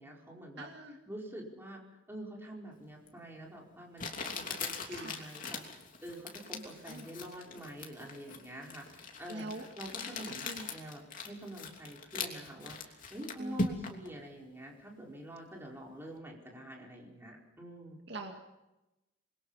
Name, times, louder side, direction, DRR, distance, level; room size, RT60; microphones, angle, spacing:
voice 1, 0.0-0.7 1.1-5.6 6.0-18.0, right 1 dB, 10° right, -1 dB, 4.7 m, -46 dB
voice 2, 0.6-1.0 4.9-5.2 6.5-7.1 9.3-9.6 10.4-10.7 13.4-14.0 18.1-18.3, right 2 dB, 60° right, 3 dB, 2.3 m, -44 dB
Crumpling crinkling, 3.1-3.2 4.0-14.1, left 3 dB, 45° left, 3.0 m, -40 dB
26.5 x 22.0 x 5.8 m, 0.98 s
head